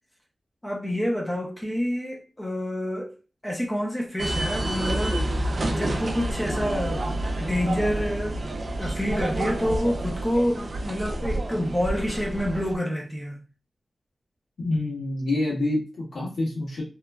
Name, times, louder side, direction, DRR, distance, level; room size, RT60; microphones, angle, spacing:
voice 1, 0.6-3.1 3.4-8.4 8.8-13.4, equal, 10° left, 0.6 m, -28 dB
sound 1, 4.2-12.7, right 1 dB, 50° right, 0.4 m, -29 dB
voice 2, 14.6-16.8, left 2 dB, 90° left, 1.3 m, -27 dB
2.9 x 2.3 x 2.2 m
wide cardioid pair, 130°, 0 cm